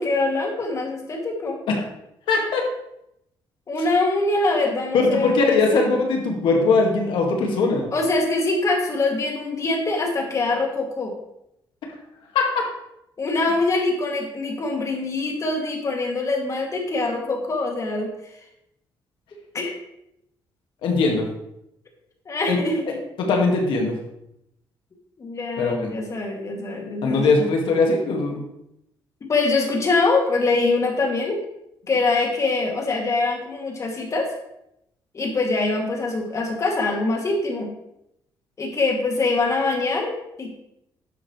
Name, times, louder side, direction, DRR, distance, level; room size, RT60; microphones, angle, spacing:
voice 1, 0.0-1.6 3.7-5.8 7.9-11.1 13.2-18.1 19.5-19.7 22.3-23.0 25.2-27.3 29.3-31.4 31.9-34.3 35.1-37.7 38.6-40.5, left 3 dB, 35° left, 1 dB, 2.5 m, -23 dB
voice 2, 2.3-2.6 4.9-7.9 12.3-12.6 20.8-21.3 22.5-22.6 22.9-23.9 25.6-25.9 27.0-28.4, left 3 dB, 80° left, 1 dB, 1.9 m, -20 dB
11.5 x 7.7 x 3.2 m, 0.81 s
cardioid pair, 110°, 9 cm